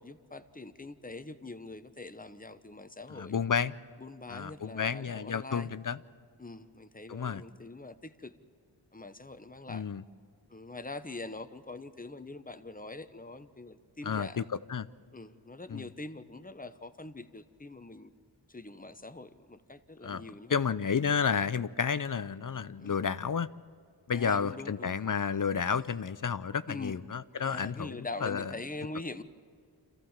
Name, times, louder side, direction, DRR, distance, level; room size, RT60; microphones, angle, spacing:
voice 1, 0.0-3.4 4.0-5.7 6.4-8.3 8.9-9.9 10.5-14.4 15.1-18.1 18.5-20.6 22.8-23.0 24.1-24.9 26.7-27.0 27.4-29.2, left 2 dB, 20° left, 11 dB, 0.9 m, -43 dB
voice 2, 3.1-3.8 4.3-6.0 7.1-7.4 9.7-10.0 14.0-14.9 15.7-15.9 20.0-23.5 24.1-28.5, left 6 dB, 45° left, 15 dB, 0.6 m, -31 dB
26.5 x 15.0 x 7.3 m, 2.1 s
wide cardioid pair, 45°, 44 cm